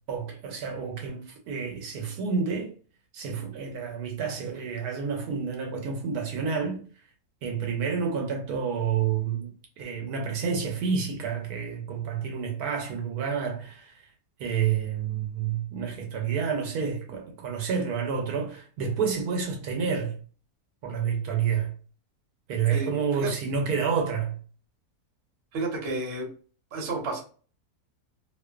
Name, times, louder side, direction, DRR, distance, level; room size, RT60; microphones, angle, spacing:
voice 1, 0.1-2.7 3.1-6.8 7.4-9.5 9.8-13.9 14.4-20.1 20.8-21.7 22.5-24.4, right 6 dB, 80° right, 1.1 m, -29 dB
voice 2, 22.7-23.3 25.5-26.3 26.7-27.2, right 2 dB, 50° right, 0.9 m, -31 dB
2.5 x 2.4 x 2.3 m
omnidirectional pair, 1.6 m